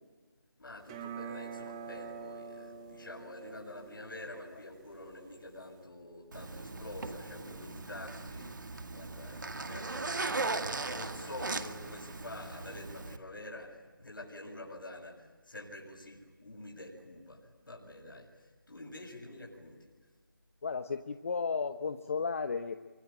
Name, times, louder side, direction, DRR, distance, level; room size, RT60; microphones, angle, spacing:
voice 1, 0.6-8.7 8.9-19.9, left 1 dB, 70° left, 0 dB, 7.2 m, -47 dB
sound 1, 0.8-5.8, right 6 dB, 15° right, 1.3 m, -46 dB
Zipper (clothing), 6.3-13.2, right 3 dB, 60° right, 2.1 m, -38 dB
voice 2, 20.6-22.8, left 5 dB, 40° left, 9 dB, 0.9 m, -34 dB
25.0 x 25.0 x 8.9 m, 1.3 s
figure-of-eight pair, 160°, 12 cm